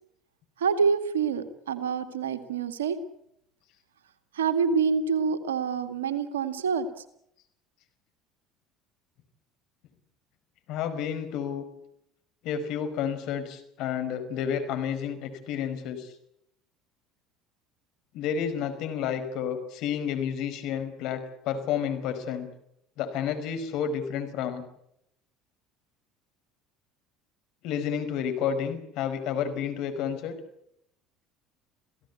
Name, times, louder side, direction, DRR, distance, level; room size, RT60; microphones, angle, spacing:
voice 1, 0.6-3.0 4.3-6.9, right 6 dB, 85° right, 9 dB, 2.1 m, -26 dB
voice 2, 10.7-11.7 12.4-16.1 18.1-22.5 23.0-24.6 27.6-30.4, left 8 dB, 60° left, 8 dB, 5.2 m, -30 dB
28.0 x 17.0 x 8.4 m, 0.75 s
hypercardioid pair, 70°, 0 cm